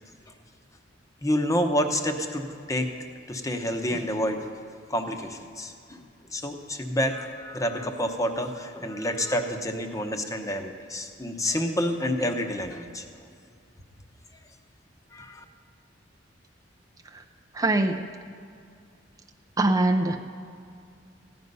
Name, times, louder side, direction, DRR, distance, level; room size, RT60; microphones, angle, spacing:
voice 1, 1.2-2.9 3.3-4.5 4.9-6.0 6.3-13.0 15.1-15.4, equal, 20° left, 5 dB, 0.9 m, -28 dB
voice 2, 17.5-18.1 19.6-20.2, right 2 dB, 20° right, 4 dB, 0.5 m, -23 dB
14.5 x 9.6 x 5.4 m, 2.4 s
head